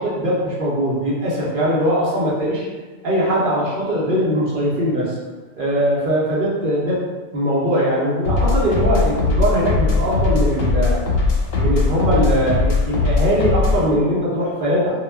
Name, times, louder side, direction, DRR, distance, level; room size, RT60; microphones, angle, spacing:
voice 1, 0.0-2.7 3.0-5.2 5.6-7.0 7.3-11.0 11.6-14.9, equal, 50° right, -6 dB, 0.8 m, -20 dB
sound 1, 8.2-13.9, left 3 dB, 85° left, 1.0 m, -19 dB
2.3 x 2.2 x 3.3 m, 1.3 s
omnidirectional pair, 1.3 m